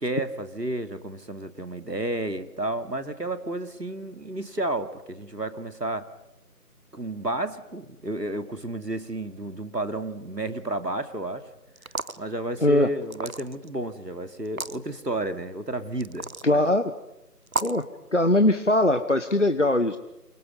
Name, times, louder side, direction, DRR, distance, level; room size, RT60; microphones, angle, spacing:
voice 1, 0.0-6.1 6.9-11.5 12.2-16.3 16.5-16.6, right 1 dB, 90° right, 9 dB, 2.7 m, -31 dB
sound 1, 11.8-12.2 13.1-13.7 14.4-14.8 16.0-16.5 17.5-17.8, right 3 dB, 60° right, 1.0 m, -32 dB
voice 2, 16.4-16.8 17.6-17.8 18.1-20.0, left 1 dB, 50° left, 10 dB, 1.3 m, -21 dB
28.5 x 28.0 x 5.5 m, 0.92 s
figure-of-eight pair, 170°, 48 cm